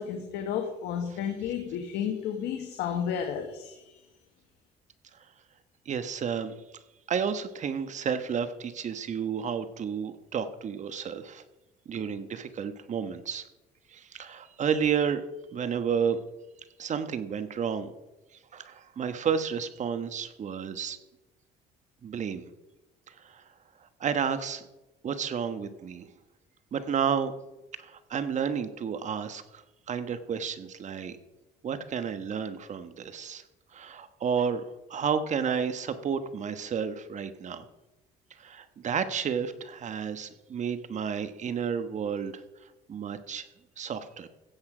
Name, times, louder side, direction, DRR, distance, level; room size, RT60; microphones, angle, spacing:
voice 1, 0.0-4.0, left 8 dB, 80° left, 4 dB, 1.4 m, -32 dB
voice 2, 5.8-6.5 7.1-11.4 11.8-13.5 13.9-15.2 15.5-16.2 16.8-17.9 18.5-21.0 22.0-22.5 23.1-23.4 24.0-24.6 25.0-26.1 26.7-27.3 27.8-31.2 31.6-33.4 33.7-34.6 34.9-37.6 38.4-42.4 42.9-43.5 43.8-44.3, right 7 dB, 45° right, 11 dB, 1.2 m, -31 dB
15.5 x 8.2 x 5.0 m, 1.0 s
cardioid pair, 110°, 17 cm